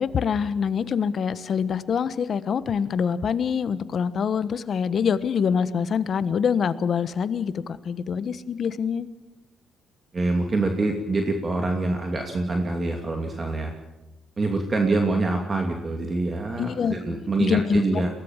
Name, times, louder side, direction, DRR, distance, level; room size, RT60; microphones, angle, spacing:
voice 1, 0.0-9.1 16.6-16.9 17.4-18.0, left 7 dB, 55° left, 13 dB, 1.2 m, -25 dB
voice 2, 10.1-13.7 14.4-18.1, right 2 dB, 35° right, 3 dB, 2.6 m, -25 dB
22.5 x 17.5 x 7.4 m, 1.1 s
cardioid pair, 90°, 0 cm